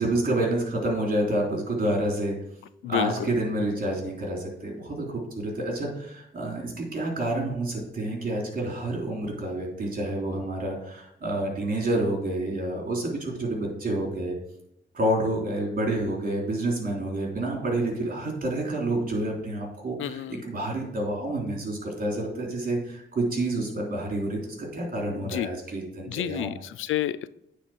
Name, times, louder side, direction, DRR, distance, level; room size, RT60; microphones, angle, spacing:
voice 1, 0.0-2.4 2.8-14.4 14.9-26.5, right 1 dB, 50° right, 0 dB, 3.4 m, -28 dB
voice 2, 2.8-3.3 20.0-20.4 25.2-25.5 26.0-27.3, left 13 dB, 85° left, 16 dB, 0.4 m, -30 dB
9.1 x 4.1 x 6.2 m, 0.77 s
cardioid pair, 70°, 20 cm